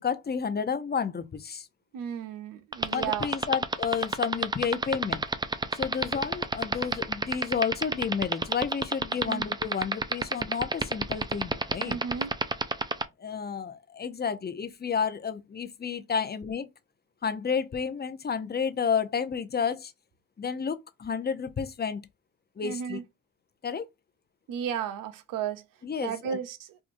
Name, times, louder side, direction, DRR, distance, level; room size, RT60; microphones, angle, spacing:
voice 1, 0.0-1.7 2.9-5.2 5.7-12.0 13.2-16.7 17.2-19.9 20.4-22.0 22.6-23.0 23.6-23.9 25.8-26.4, left 6 dB, 30° left, 0.6 m, -31 dB
voice 2, 1.9-3.3 9.3-9.5 11.8-12.4 22.6-23.0 24.5-25.6 26.0-26.8, right 8 dB, 85° right, 0.6 m, -34 dB
sound 1, 2.7-13.0, right 3 dB, 15° right, 0.4 m, -26 dB
4.8 x 2.6 x 2.6 m
cardioid pair, 70°, 32 cm